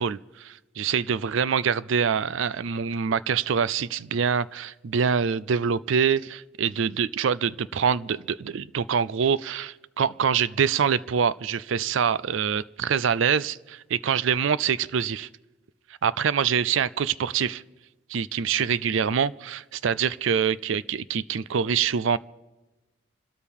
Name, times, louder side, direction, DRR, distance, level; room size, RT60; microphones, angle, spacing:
voice 1, 0.0-15.3 16.0-17.6 18.1-22.2, right 7 dB, 70° right, 19 dB, 0.4 m, -25 dB
27.0 x 13.0 x 3.6 m, 1.1 s
head